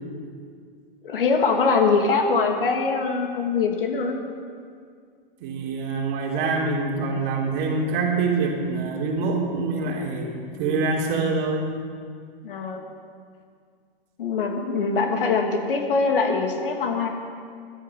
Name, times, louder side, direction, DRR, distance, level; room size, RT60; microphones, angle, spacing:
voice 1, 1.0-4.2 12.4-12.8 14.2-17.1, left 4 dB, 65° left, 2 dB, 2.8 m, -23 dB
voice 2, 5.4-10.3 10.6-11.7, right 3 dB, 40° right, -2 dB, 3.7 m, -25 dB
14.5 x 12.5 x 7.7 m, 2.2 s
hypercardioid pair, 115°, 29 cm